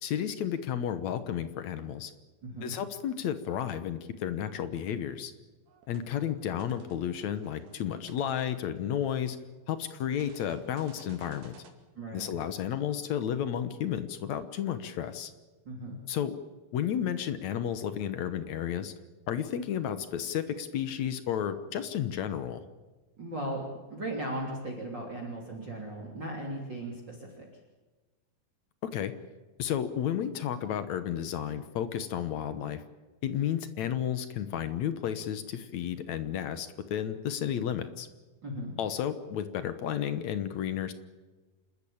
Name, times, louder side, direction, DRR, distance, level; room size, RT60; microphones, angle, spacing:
voice 1, 0.0-2.1 2.6-5.3 5.9-9.4 9.7-11.5 12.1-15.3 16.1-16.4 16.7-18.9 19.3-22.6 28.8-29.1 29.6-32.8 33.2-38.1 38.8-40.9, left 9 dB, 65° left, 12 dB, 2.0 m, -32 dB
voice 2, 2.4-2.7 11.9-12.3 15.6-16.0 23.2-23.6 23.9-27.5 38.4-38.7, right 1 dB, 30° right, 0 dB, 3.4 m, -37 dB
sound 1, 5.7-6.1 6.5-9.6 10.2-11.7, right 5 dB, 80° right, 4.2 m, -56 dB
28.0 x 13.5 x 8.7 m, 1.3 s
omnidirectional pair, 4.3 m